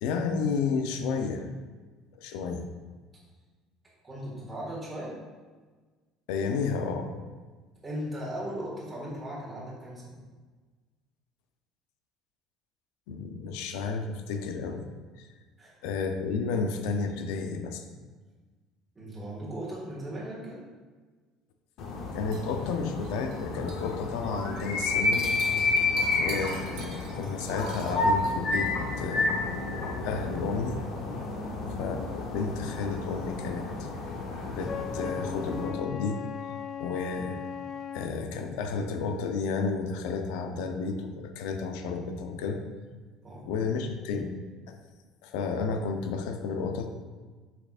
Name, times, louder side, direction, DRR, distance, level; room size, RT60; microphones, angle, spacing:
voice 1, 0.0-1.5 2.1-2.7 6.3-7.1 13.1-14.8 15.2-15.3 15.8-17.8 22.1-25.3 26.2-29.3 30.0-30.8 31.8-33.7 34.5-36.2 36.8-37.4 37.9-42.6 43.5-44.3 44.7-44.8 45.2-46.9, left 5 dB, 80° left, 6 dB, 0.6 m, -31 dB
voice 2, 4.0-5.2 7.8-10.2 15.6-15.7 19.0-20.6 25.9-26.1 31.4-31.6 43.2-43.5, right 1 dB, 10° right, -6 dB, 1.7 m, -38 dB
sound 1, 21.8-35.7, left 3 dB, 45° left, 0.8 m, -31 dB
sound 2, 22.3-23.4 23.7-23.9 24.2-24.6 24.9-28.8, right 5 dB, 60° right, 1.2 m, -45 dB
Wind instrument woodwind instrument, 34.6-38.2, left 7 dB, 30° left, 0.3 m, -38 dB
6.9 x 5.8 x 2.5 m, 1.4 s
cardioid pair, 175°, 0 cm